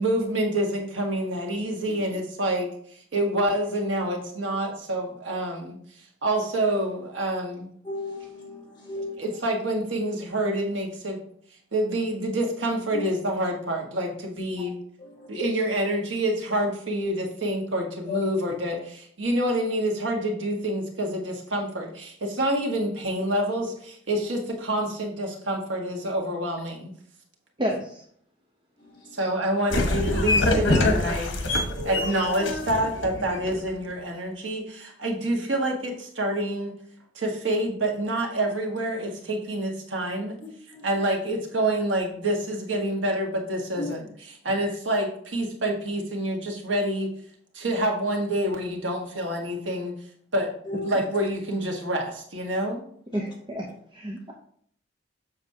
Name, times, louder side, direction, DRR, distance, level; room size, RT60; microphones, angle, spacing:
voice 1, 0.0-2.7 3.1-5.8 6.2-7.7 9.2-11.2 11.7-14.8 15.3-26.9 29.1-31.4 31.8-36.7 37.1-40.4 40.8-47.1 47.5-49.9 50.3-50.5 50.8-52.8, right 1 dB, 90° right, 1 dB, 1.4 m, -27 dB
voice 2, 7.8-9.2 12.9-13.1 15.2-15.5 18.1-18.2 24.1-24.2 30.0-30.1 31.7-32.0 40.7-40.9 43.8-43.9 50.7-50.9, left 3 dB, 25° left, -4 dB, 1.9 m, -34 dB
voice 3, 27.6-27.9 53.1-53.7 53.9-54.3, equal, 25° right, 0 dB, 0.7 m, -29 dB
sound 1, 29.7-33.7, left 2 dB, 85° left, 1.1 m, -25 dB
7.1 x 6.0 x 2.7 m, 0.63 s
head